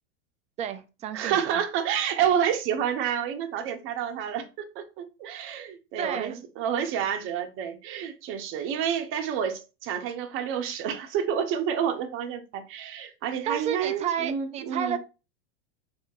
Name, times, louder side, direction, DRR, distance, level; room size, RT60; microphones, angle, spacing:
voice 1, 0.6-1.6 6.0-6.4 13.5-15.0, right 8 dB, 20° right, 0.4 m, -31 dB
voice 2, 1.1-15.0, right 8 dB, 40° right, 0.8 m, -29 dB
2.8 x 2.6 x 3.8 m
hypercardioid pair, 115°, 33 cm